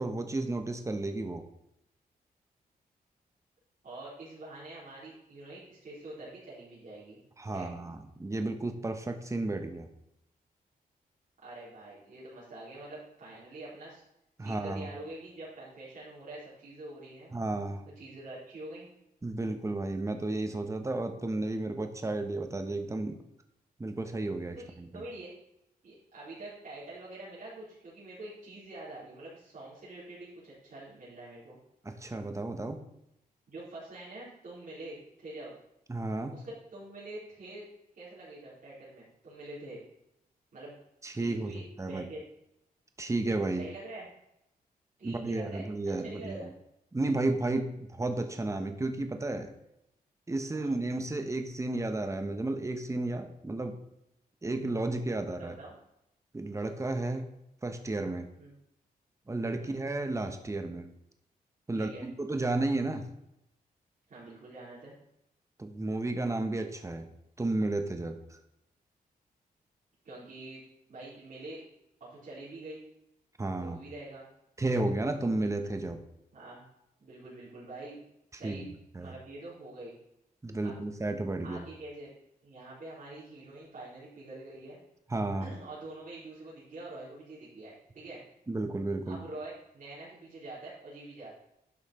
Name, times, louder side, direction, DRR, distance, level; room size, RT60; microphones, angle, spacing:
voice 1, 0.0-1.4 7.4-9.9 14.4-14.9 17.3-17.8 19.2-23.2 23.8-25.0 31.8-32.8 35.9-36.4 41.0-42.1 43.0-43.6 45.0-46.4 46.9-49.5 50.3-53.8 54.4-55.5 56.3-57.3 57.6-58.3 59.3-60.9 61.7-63.1 65.6-67.1 67.4-68.2 73.4-73.8 74.6-76.0 78.4-78.7 78.9-79.1 80.4-81.7 85.1-85.5 88.5-89.2, right 2 dB, 20° right, 6 dB, 1.1 m, -32 dB
voice 2, 3.8-7.2 7.5-7.7 11.4-14.0 14.4-17.3 18.0-18.9 24.6-25.3 25.8-31.6 33.5-35.6 36.3-37.7 37.9-39.8 40.5-40.8 41.1-42.2 43.6-44.1 45.0-45.6 46.0-46.5 50.5-50.7 55.4-55.7 58.4-58.5 59.6-59.8 61.7-62.1 64.1-64.9 70.0-70.6 70.9-71.6 72.0-72.8 73.6-74.2 76.3-76.7 77.0-78.0 78.3-78.7 79.0-80.0 80.6-80.7 81.4-82.1 82.4-84.8 85.4-88.2 89.0-91.3, right 2 dB, 55° right, -9 dB, 3.9 m, -45 dB
11.0 x 5.8 x 4.3 m, 0.82 s
cardioid pair, 100°, 16 cm